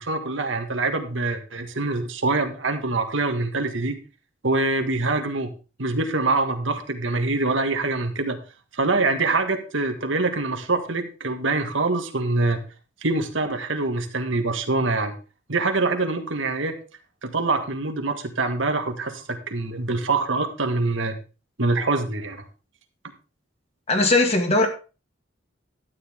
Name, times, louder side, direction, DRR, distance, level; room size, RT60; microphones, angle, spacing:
voice 1, 0.0-4.0 4.4-5.5 5.8-8.4 8.7-12.6 13.0-15.1 15.5-16.8 17.2-21.2 21.6-22.4, right 3 dB, 70° right, 1.7 m, -24 dB
voice 2, 23.9-24.7, left 2 dB, 30° left, 2.1 m, -19 dB
12.5 x 9.3 x 3.6 m
head